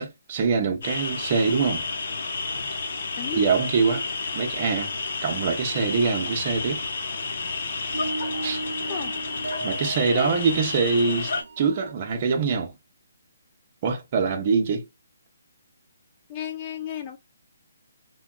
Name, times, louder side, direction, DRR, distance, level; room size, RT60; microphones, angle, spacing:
voice 1, 0.0-1.9 3.3-4.0 4.3-4.9 5.2-6.8 8.4-8.6 9.6-12.7 13.8-14.9, right 5 dB, 35° right, 0.8 m, -24 dB
sound 1, 0.8-11.4, left 3 dB, 55° left, 0.8 m, -31 dB
sound 2, 3.1-3.5 4.4-4.8 5.6-5.7 6.2-6.4 6.7-7.3 7.6-11.9, right 2 dB, 70° right, 0.4 m, -37 dB
voice 2, 8.9-9.3 10.1-10.3 16.3-17.2, left 8 dB, 25° left, 0.4 m, -34 dB
3.5 x 2.2 x 2.3 m
hypercardioid pair, 160°, 0 cm